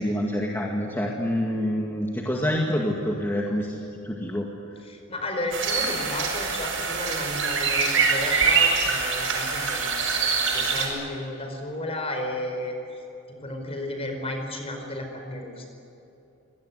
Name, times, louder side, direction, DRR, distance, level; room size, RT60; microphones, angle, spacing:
voice 1, 0.0-3.7 4.0-4.5, equal, 10° left, -1 dB, 2.1 m, -26 dB
voice 2, 4.8-12.7 13.3-15.7, left 1 dB, 30° left, 4 dB, 4.9 m, -33 dB
sound 1, 5.5-10.9, right 5 dB, 70° right, 7.0 m, -24 dB
24.5 x 19.0 x 9.6 m, 2.9 s
head